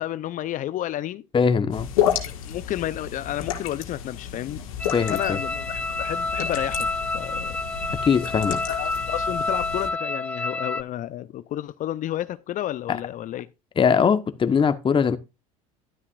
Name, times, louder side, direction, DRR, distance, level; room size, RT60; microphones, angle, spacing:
voice 1, 0.0-1.2 2.3-4.6 5.1-7.6 8.7-13.5, left 13 dB, 50° left, 0.6 m, -31 dB
voice 2, 1.3-1.9 4.9-5.4 8.0-8.6 12.9-13.0 13.8-15.2, left 6 dB, 30° left, 1.1 m, -21 dB
sound 1, 1.7-9.9, left 10 dB, 80° left, 1.8 m, -31 dB
sound 2, 4.8-10.8, left 3 dB, 5° left, 0.5 m, -29 dB
12.5 x 9.7 x 2.5 m
hypercardioid pair, 75°, 17 cm